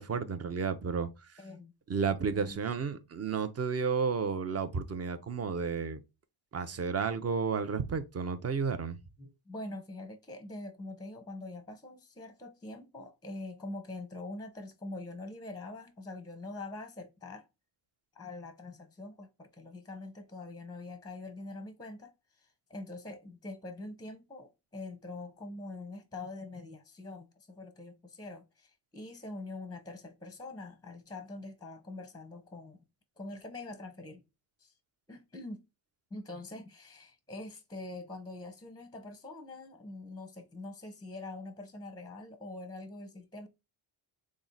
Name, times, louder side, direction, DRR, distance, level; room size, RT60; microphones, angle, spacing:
voice 1, 0.0-1.4 1.9-6.0 6.5-9.0, right 5 dB, 30° right, 0.6 m, -32 dB
voice 2, 1.4-1.7 2.3-2.6 9.2-17.5 18.2-22.1 22.4-32.8 33.2-34.2 34.6-34.7 35.1-35.6 36.1-43.5, left 2 dB, 10° left, 0.6 m, -44 dB
3.6 x 2.1 x 3.8 m
cardioid pair, 75°, 49 cm